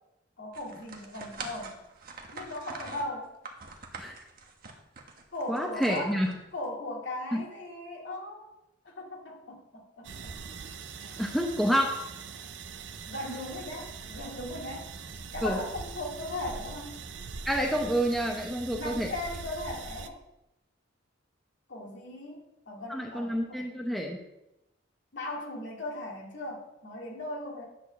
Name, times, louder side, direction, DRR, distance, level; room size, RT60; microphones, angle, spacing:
voice 1, 0.4-1.8 2.3-3.3 5.3-6.1 6.5-8.5 8.8-10.4 11.0-11.2 13.1-14.9 15.3-16.9 18.7-20.2 21.7-23.6 25.1-27.6, left 1 dB, 65° left, -2 dB, 2.7 m, -38 dB
sound 1, 0.5-6.7, right 4 dB, 50° right, 1.3 m, -44 dB
voice 2, 5.5-6.3 7.3-7.4 11.2-12.0 15.4-15.6 17.5-19.1 22.9-24.2, equal, ahead, 1 dB, 0.9 m, -28 dB
sound 2, 10.0-20.1, right 5 dB, 65° right, 0.7 m, -42 dB
10.0 x 4.4 x 7.0 m, 0.92 s
head